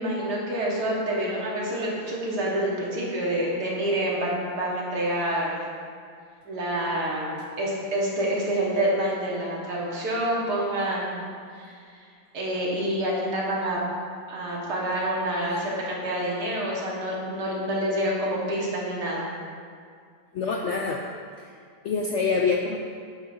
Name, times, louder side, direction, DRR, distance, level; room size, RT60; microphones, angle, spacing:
voice 1, 0.0-5.6 6.5-11.2 11.5-12.0 12.3-13.8 14.3-19.3, right 1 dB, 85° right, -4 dB, 2.1 m, -27 dB
voice 2, 20.3-21.0 21.8-22.8, left 4 dB, 75° left, 0 dB, 0.6 m, -25 dB
9.6 x 7.3 x 2.6 m, 2.2 s
omnidirectional pair, 1.7 m